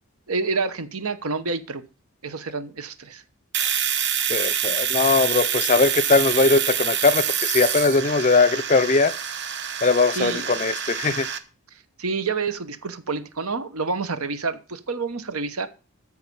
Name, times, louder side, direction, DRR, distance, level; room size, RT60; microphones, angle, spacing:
voice 1, 0.3-1.8 2.2-3.2 10.1-10.5 12.0-15.7, right 4 dB, 80° right, 1.1 m, -28 dB
Domestic sounds home sounds, 3.5-11.4, right 9 dB, 50° right, 1.0 m, -26 dB
voice 2, 4.3-9.1 9.8-11.3, left 3 dB, 35° left, 0.5 m, -20 dB
13.5 x 4.9 x 7.0 m
head